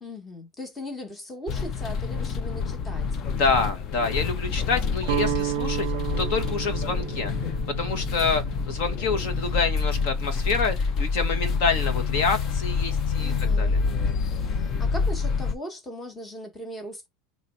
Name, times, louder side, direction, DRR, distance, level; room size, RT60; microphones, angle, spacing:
voice 1, 0.0-3.2 13.2-13.9 14.4-17.1, equal, 10° left, 1.1 m, -39 dB
sound 1, 1.5-15.5, left 5 dB, 30° left, 0.5 m, -27 dB
voice 2, 3.4-13.8, left 4 dB, 50° left, 1.1 m, -27 dB
Guitar, 5.0-11.1, right 16 dB, 80° right, 0.4 m, -33 dB
4.1 x 3.1 x 4.2 m
supercardioid pair, 175°, 0 cm